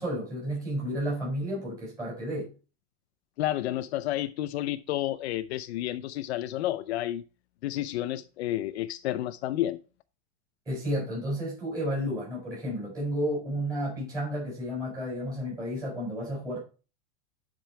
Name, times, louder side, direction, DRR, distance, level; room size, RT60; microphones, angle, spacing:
voice 1, 0.0-2.5 10.7-16.6, equal, 10° right, 6.1 m, -32 dB
voice 2, 3.4-7.2 7.6-9.8, left 14 dB, 70° left, 0.6 m, -30 dB
10.5 x 5.4 x 4.5 m
supercardioid pair, 180°, 34 cm